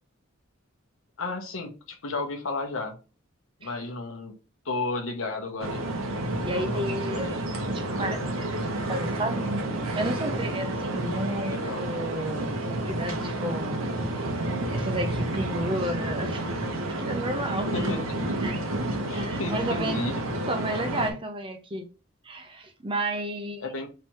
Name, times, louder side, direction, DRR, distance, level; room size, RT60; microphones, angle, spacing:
voice 1, 1.2-3.0 3.6-4.3 4.6-5.9 6.4-7.3 11.3-11.9 17.7-18.4 19.1-20.2 23.6-23.9, left 3 dB, 75° left, 1.0 m, -33 dB
sound 1, 5.6-21.1, right 1 dB, 85° right, 0.9 m, -30 dB
voice 2, 6.5-9.4 9.9-12.5 12.8-13.8 14.2-14.4 14.7-16.6 16.9-17.7 18.4-18.6 19.1-20.0 20.5-21.9 22.2-23.6, right 1 dB, 25° right, 0.7 m, -32 dB
3.3 x 2.9 x 4.3 m
head